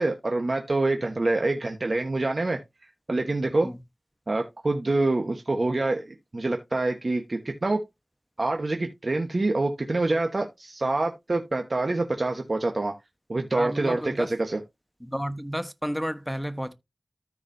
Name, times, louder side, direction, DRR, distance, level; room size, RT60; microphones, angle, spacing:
voice 1, 0.0-2.6 3.1-3.7 4.3-7.8 8.4-12.9 13.3-14.6, right 2 dB, 65° right, 1.2 m, -26 dB
voice 2, 13.5-14.3 15.0-16.7, equal, ahead, 1.1 m, -31 dB
14.0 x 4.8 x 2.7 m
wide cardioid pair, 45°, 0 cm